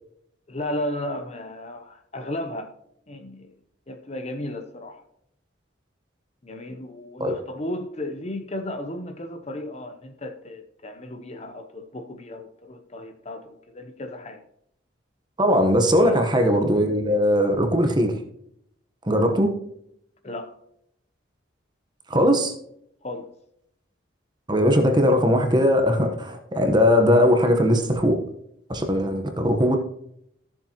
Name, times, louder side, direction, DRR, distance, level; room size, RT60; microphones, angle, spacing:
voice 1, 0.5-2.7 3.1-3.5 3.9-5.0 6.4-14.4 16.0-16.2 20.2-20.6 23.0-23.3, left 1 dB, 35° left, 0.8 m, -34 dB
voice 2, 15.4-18.2 19.1-19.5 22.1-22.5 24.5-28.2 28.7-29.8, equal, 20° right, 1.1 m, -19 dB
14.0 x 7.3 x 3.0 m
head